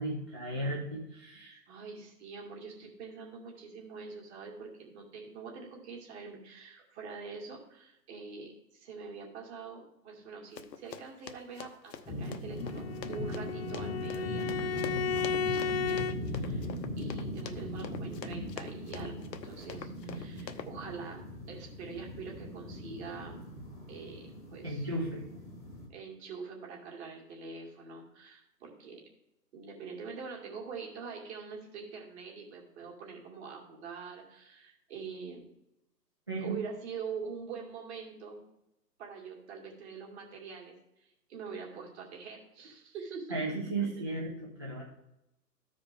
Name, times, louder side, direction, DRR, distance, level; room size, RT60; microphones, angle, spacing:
voice 1, 0.0-1.6 24.6-25.2 36.3-36.6 43.3-44.8, right 2 dB, 20° right, -4 dB, 0.4 m, -35 dB
voice 2, 1.7-16.7 17.0-23.5 23.9-24.9 25.9-29.0 29.5-35.5 36.4-38.4 39.0-43.9, right 5 dB, 40° right, -1 dB, 2.6 m, -44 dB
Run, 10.6-20.7, left 7 dB, 75° left, 0.9 m, -45 dB
sound 1, 12.1-25.9, left 1 dB, 5° left, 1.2 m, -40 dB
Bowed string instrument, 12.6-16.2, left 6 dB, 40° left, 0.4 m, -33 dB
14.0 x 5.0 x 3.7 m, 0.88 s
hypercardioid pair, 145°, 50 cm